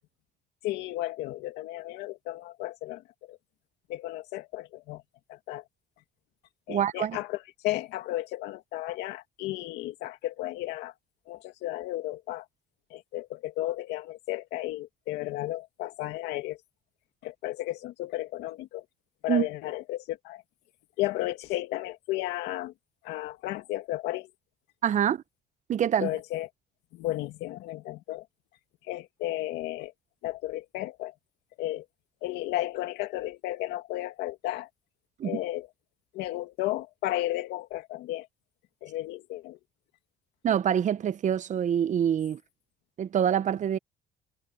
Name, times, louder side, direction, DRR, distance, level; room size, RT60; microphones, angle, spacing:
voice 1, 0.6-3.4 3.9-5.0 5.3-5.6 6.7-10.9 11.3-12.5 12.9-16.6 17.2-18.8 19.2-20.4 21.0-22.7 23.0-24.3 26.0-26.5 26.9-28.3 28.8-29.9 30.2-31.1 31.6-31.9 32.2-34.7 35.2-35.7 36.1-38.3 38.8-39.6, left 16 dB, 90° left, 2.3 m, -33 dB
voice 2, 6.7-7.2 19.3-19.5 24.8-25.2 25.7-26.1 35.2-35.4 40.4-42.4 43.0-43.8, right 9 dB, 45° right, 0.8 m, -25 dB
cardioid pair, 110°, 17 cm